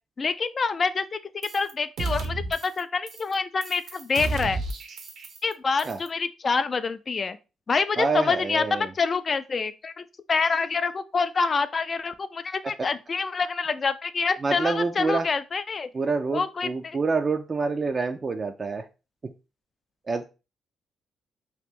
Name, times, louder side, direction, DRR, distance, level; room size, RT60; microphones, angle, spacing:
voice 1, 0.2-4.6 5.4-7.4 7.7-15.9 16.3-17.0, left 4 dB, 40° left, 0.3 m, -27 dB
sound 1, 1.4-1.7 2.0-2.8 3.1-3.3 3.6-5.5 5.8-6.1, right 3 dB, 65° right, 0.7 m, -32 dB
voice 2, 8.0-8.9 14.4-15.3 15.9-18.8 20.1-20.2, right 4 dB, 35° right, 0.4 m, -27 dB
2.9 x 2.5 x 3.5 m
cardioid pair, 90°, 0 cm